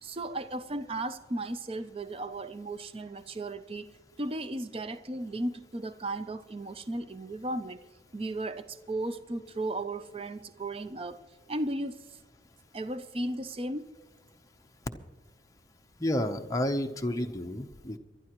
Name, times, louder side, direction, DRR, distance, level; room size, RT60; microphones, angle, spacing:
voice 1, 0.0-3.9 4.2-7.8 8.1-11.2 11.5-12.2 12.7-13.8, right 2 dB, 30° right, 11 dB, 0.5 m, -35 dB
voice 2, 16.0-18.0, left 1 dB, 15° left, 5 dB, 0.7 m, -30 dB
24.0 x 12.0 x 3.0 m, 1.3 s
head